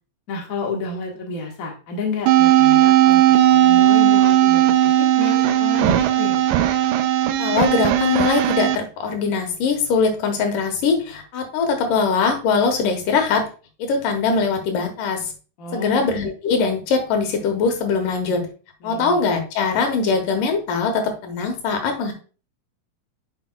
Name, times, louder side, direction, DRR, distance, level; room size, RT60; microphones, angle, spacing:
voice 1, 0.3-6.5 15.6-16.0 18.8-19.2, left 3 dB, 60° left, 0 dB, 0.8 m, -30 dB
sound 1, 2.3-8.8, right 12 dB, 80° right, 2.2 m, -16 dB
voice 2, 7.4-13.4 13.8-15.2 15.7-18.5 18.8-22.1, left 5 dB, 75° left, 5 dB, 2.7 m, -21 dB
9.5 x 5.5 x 2.3 m, 0.36 s
omnidirectional pair, 3.9 m